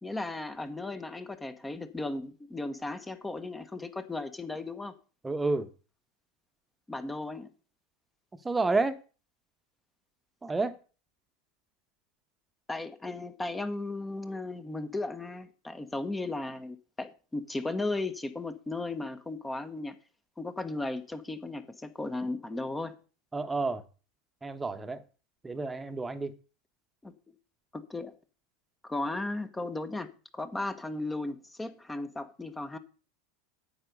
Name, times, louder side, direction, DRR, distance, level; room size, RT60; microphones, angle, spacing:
voice 1, 0.0-4.9 6.9-7.5 12.7-20.0 20.4-23.0 27.0-27.3 27.7-28.1 28.8-32.8, left 2 dB, 10° left, 1.3 m, -36 dB
voice 2, 5.2-5.7 8.4-8.9 10.4-10.8 23.3-23.8 24.4-25.0 25.4-26.3, right 3 dB, 15° right, 1.2 m, -29 dB
9.6 x 7.7 x 5.4 m
hypercardioid pair, 85°, 0 cm